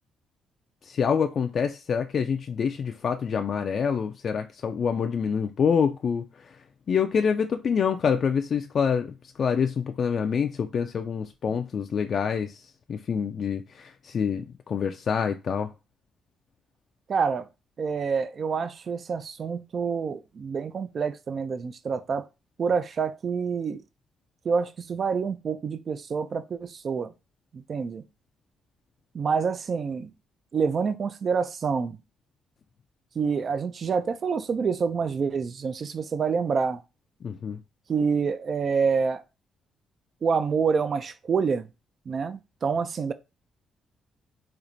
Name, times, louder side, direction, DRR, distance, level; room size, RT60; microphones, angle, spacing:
voice 1, 0.8-6.2 6.9-12.6 12.9-15.7 37.2-37.6, left 6 dB, 50° left, 0.3 m, -26 dB
voice 2, 17.1-17.5 17.8-22.2 22.6-23.8 24.4-27.1 27.5-28.0 29.1-30.1 30.5-32.0 33.2-36.8 37.9-39.2 40.2-41.7 42.1-43.1, right 5 dB, 50° right, 0.3 m, -27 dB
4.3 x 2.4 x 2.6 m
cardioid pair, 90°, 0 cm